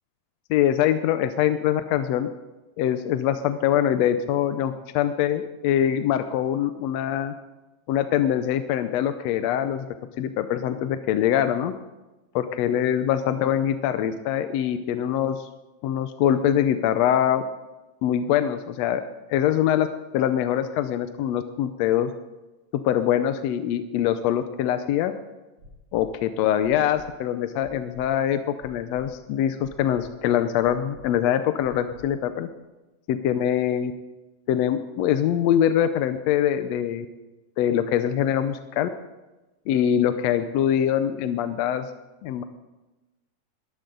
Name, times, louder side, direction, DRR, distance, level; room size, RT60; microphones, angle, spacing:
voice 1, 0.5-2.3 2.8-7.3 7.9-9.9 10.2-11.7 12.3-15.5 15.8-17.4 18.0-19.0 19.3-19.9 20.1-22.1 22.7-25.1 25.9-32.5 33.1-33.9 34.5-37.1 37.6-38.9 39.7-41.9 42.2-42.4, left 10 dB, 75° left, 9 dB, 1.7 m, -23 dB
sound 1, 25.6-26.0 26.6-27.0 27.6-28.0 28.6-29.0 29.6-30.0 30.6-31.0 31.6-32.0 32.6-32.7, left 1 dB, 50° right, 4.0 m, -48 dB
21.0 x 14.5 x 3.9 m, 1.1 s
omnidirectional pair, 3.3 m